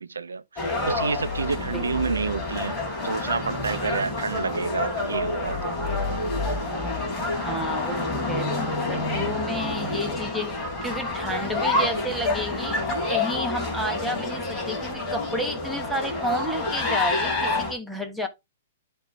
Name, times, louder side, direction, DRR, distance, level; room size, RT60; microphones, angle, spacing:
voice 1, 0.0-2.8 3.0-6.2, right 4 dB, 75° right, 0.6 m, -29 dB
sound 1, 0.6-17.7, left 2 dB, 20° left, 3.6 m, -28 dB
voice 2, 7.4-12.8 13.1-18.3, equal, ahead, 1.3 m, -31 dB
11.5 x 4.4 x 3.3 m
figure-of-eight pair, 110°, 0 cm